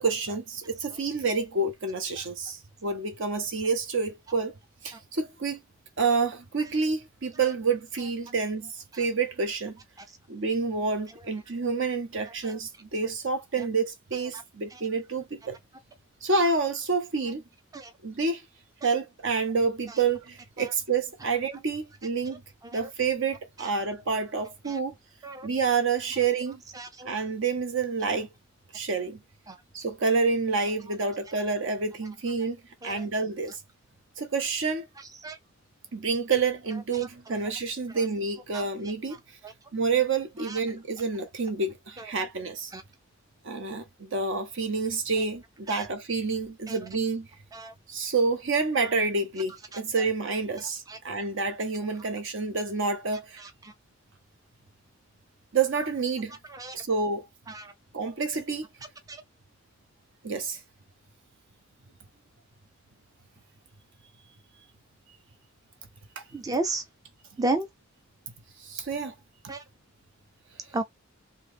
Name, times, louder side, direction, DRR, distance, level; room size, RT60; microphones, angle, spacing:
voice 1, 0.0-4.5 4.8-5.6 6.0-9.8 10.3-15.6 16.2-17.4 18.0-18.4 18.8-22.4 22.7-24.9 25.4-26.6 27.0-28.3 28.7-29.2 29.7-33.6 34.2-34.9 35.9-39.2 39.7-42.7 43.4-47.3 47.9-53.4 55.5-56.4 56.7-57.3 57.9-58.7 60.2-60.6 68.6-69.1, right 4 dB, 65° right, 0.8 m, -28 dB
voice 2, 66.3-66.8 67.4-67.7 69.5-69.6 70.7-70.8, right 2 dB, 15° right, 0.4 m, -30 dB
3.0 x 2.8 x 3.3 m
head